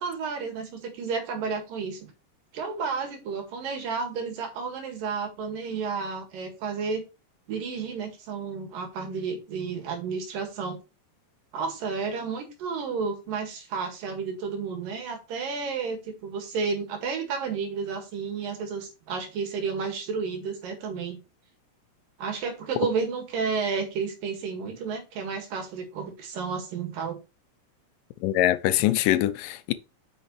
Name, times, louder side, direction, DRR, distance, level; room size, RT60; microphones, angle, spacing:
voice 1, 0.0-2.1 2.5-7.0 7.5-10.8 11.5-21.2 22.2-27.2, right 5 dB, 75° right, 3.6 m, -31 dB
voice 2, 28.2-29.7, left 14 dB, 80° left, 2.2 m, -23 dB
8.6 x 6.5 x 3.2 m
omnidirectional pair, 4.0 m